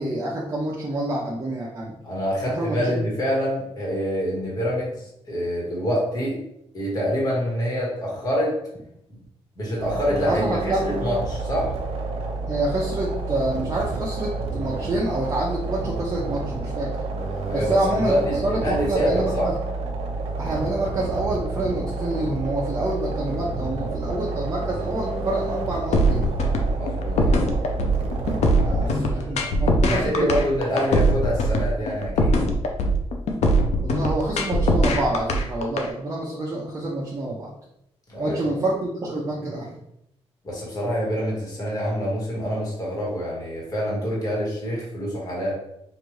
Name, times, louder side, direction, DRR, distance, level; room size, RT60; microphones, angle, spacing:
voice 1, 0.0-1.9 2.4-3.0 10.3-10.8 12.5-16.9 17.5-18.2 18.4-19.6 20.4-26.3 28.6-30.4 33.8-37.5 38.2-39.7, right 2 dB, 30° right, -5 dB, 0.6 m, -27 dB
voice 2, 2.0-6.4 6.7-8.5 9.1-9.2 9.5-10.5 10.8-11.7 17.4-19.5 26.7-27.4 28.7-29.6 29.8-32.4 38.1-38.5 40.4-45.5, equal, 35° left, -4 dB, 1.4 m, -26 dB
sound 1, 9.8-28.9, right 3 dB, 65° right, 0.8 m, -29 dB
sound 2, 25.9-35.9, equal, 80° left, 0.6 m, -21 dB
5.0 x 2.5 x 3.1 m, 0.77 s
wide cardioid pair, 160°, 11 cm